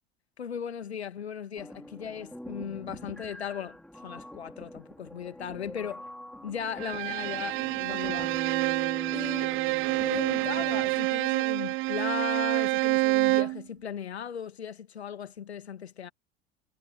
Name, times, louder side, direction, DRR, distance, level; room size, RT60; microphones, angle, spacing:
voice 1, 0.4-6.1 6.4-8.4 9.1-9.6 10.0-16.1, left 8 dB, 75° left, 1.8 m, -37 dB
sound 1, 1.6-11.1, equal, ahead, 4.2 m, -44 dB
Bowed string instrument, 6.8-13.6, right 22 dB, 40° right, 0.6 m, -27 dB
figure-of-eight pair, 75°, 32 cm